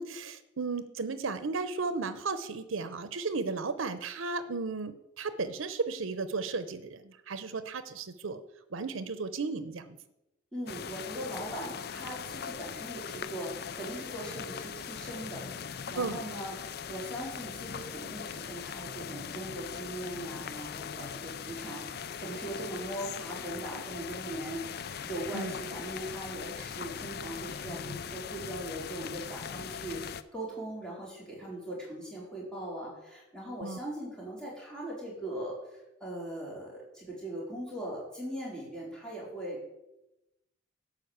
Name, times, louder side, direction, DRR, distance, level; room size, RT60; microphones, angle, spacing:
voice 1, 0.0-8.4 8.7-10.0 16.0-16.2 25.3-25.5 33.6-33.8, right 4 dB, 90° right, 12 dB, 0.7 m, -34 dB
voice 2, 10.5-30.0 30.3-39.6, right 1 dB, 5° left, -5 dB, 4.1 m, -40 dB
sound 1, 10.7-30.2, left 7 dB, 50° left, 0.4 m, -40 dB
11.5 x 5.1 x 7.9 m, 0.93 s
head